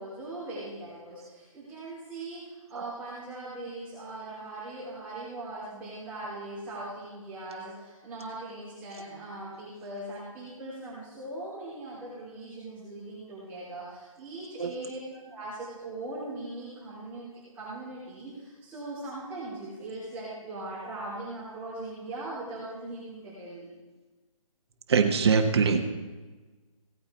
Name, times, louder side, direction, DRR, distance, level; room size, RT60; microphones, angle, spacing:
voice 1, 0.0-15.0 15.3-23.7, right 2 dB, 10° right, -11 dB, 3.2 m, -40 dB
voice 2, 24.9-25.9, right 5 dB, 50° right, 5 dB, 1.5 m, -23 dB
17.0 x 8.8 x 4.4 m, 1.2 s
hypercardioid pair, 165°, 18 cm